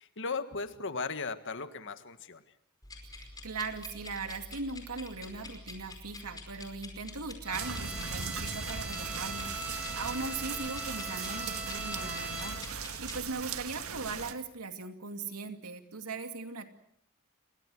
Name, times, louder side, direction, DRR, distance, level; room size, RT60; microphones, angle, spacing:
voice 1, 0.0-2.4, left 4 dB, 60° left, 10 dB, 1.7 m, -37 dB
sound 1, 2.8-13.2, left 2 dB, 20° left, 5.1 m, -47 dB
voice 2, 3.0-16.7, right 4 dB, 90° right, 6 dB, 2.6 m, -39 dB
Bowed string instrument, 7.4-12.9, right 1 dB, 5° right, 7.2 m, -41 dB
sound 2, 7.5-14.3, right 6 dB, 70° right, 1.9 m, -39 dB
29.0 x 22.5 x 6.3 m, 0.70 s
head